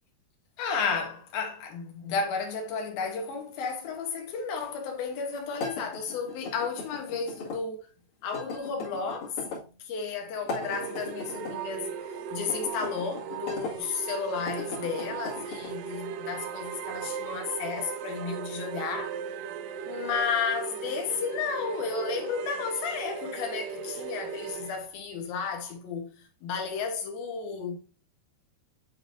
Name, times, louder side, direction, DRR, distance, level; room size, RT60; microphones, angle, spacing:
voice 1, 0.6-7.9 8.2-9.4 9.8-19.2 19.9-27.8, left 5 dB, 70° left, 2.7 m, -33 dB
sound 1, 5.6-7.6 8.3-9.6 10.4-11.6 12.4-13.7 14.3-15.7, left 3 dB, 50° left, 3.1 m, -38 dB
sound 2, 10.6-24.8, right 7 dB, 85° right, 2.6 m, -37 dB
9.0 x 3.9 x 2.6 m
omnidirectional pair, 4.8 m